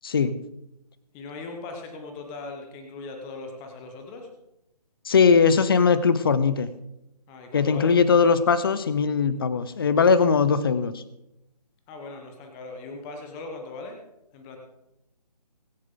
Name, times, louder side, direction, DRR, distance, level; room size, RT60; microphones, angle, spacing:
voice 1, 0.0-0.4 5.1-6.7 7.5-11.0, left 5 dB, 35° left, 14 dB, 0.9 m, -20 dB
voice 2, 1.1-4.3 7.3-7.9 11.9-14.0 14.3-14.6, left 3 dB, 10° left, 3 dB, 1.2 m, -39 dB
23.5 x 8.1 x 3.9 m, 0.87 s
figure-of-eight pair, 150°, 21 cm